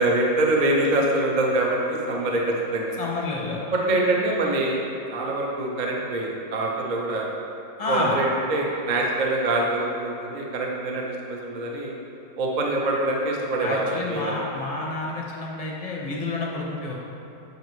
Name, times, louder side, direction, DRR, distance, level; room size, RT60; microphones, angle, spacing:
voice 1, 0.0-2.9 3.7-4.8 5.1-7.3 7.9-11.9 12.3-14.4, right 2 dB, 75° right, -1 dB, 0.4 m, -24 dB
voice 2, 3.0-4.2 7.8-8.2 13.6-16.9, left 3 dB, 40° left, -4 dB, 0.5 m, -29 dB
7.6 x 5.4 x 3.1 m, 2.8 s
omnidirectional pair, 1.9 m